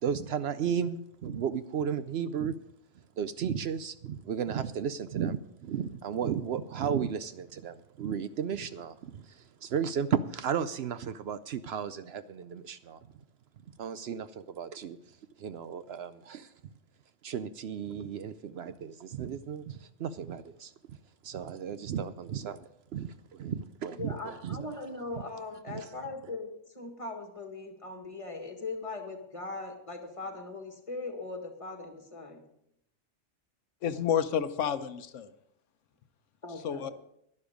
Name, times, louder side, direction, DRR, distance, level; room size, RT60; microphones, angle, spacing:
voice 1, 0.0-2.5 3.2-13.0 13.7-15.0 15.4-16.5 17.2-21.0 21.2-24.7 25.7-25.9, right 7 dB, 65° right, 12 dB, 0.8 m, -34 dB
voice 2, 24.0-32.4 36.4-36.9, left 3 dB, 25° left, 4 dB, 1.7 m, -40 dB
voice 3, 33.8-35.3 36.6-36.9, left 8 dB, 80° left, 11 dB, 1.1 m, -30 dB
11.5 x 11.0 x 5.1 m, 0.76 s
omnidirectional pair, 1.3 m